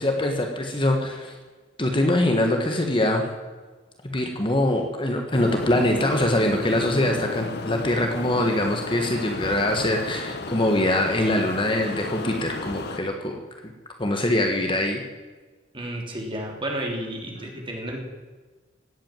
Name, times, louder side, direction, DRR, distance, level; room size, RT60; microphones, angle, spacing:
voice 1, 0.0-1.3 1.8-3.3 4.0-13.4 14.0-15.0, left 1 dB, 25° left, 3 dB, 1.5 m, -23 dB
sound 1, 5.3-13.0, left 2 dB, 55° left, 1.2 m, -33 dB
voice 2, 15.7-18.0, right 1 dB, 25° right, 0 dB, 3.4 m, -31 dB
17.0 x 8.8 x 9.1 m, 1.4 s
head